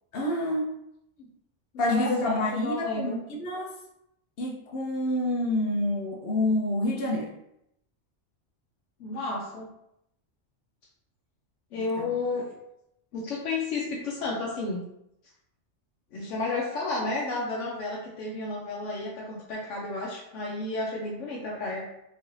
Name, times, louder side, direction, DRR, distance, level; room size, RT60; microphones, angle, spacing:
voice 1, 0.1-0.7 1.8-3.7 4.4-7.3 11.8-12.1, left 1 dB, 60° left, 0 dB, 0.7 m, -28 dB
voice 2, 1.9-3.2 9.0-9.7 11.7-12.5 13.1-14.8 16.1-21.8, left 3 dB, 90° left, -4 dB, 1.0 m, -32 dB
3.1 x 2.5 x 3.0 m, 0.80 s
omnidirectional pair, 1.2 m